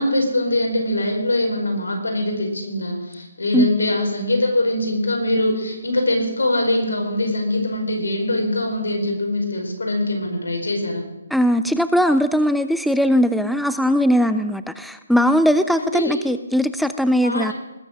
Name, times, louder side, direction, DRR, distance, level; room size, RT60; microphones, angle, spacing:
voice 1, 0.0-11.0 15.8-16.2 17.2-17.5, left 1 dB, 85° left, 2 dB, 4.9 m, -22 dB
voice 2, 11.3-17.5, equal, ahead, 11 dB, 0.4 m, -19 dB
19.5 x 7.7 x 6.3 m, 1.0 s
hypercardioid pair, 155°, 0 cm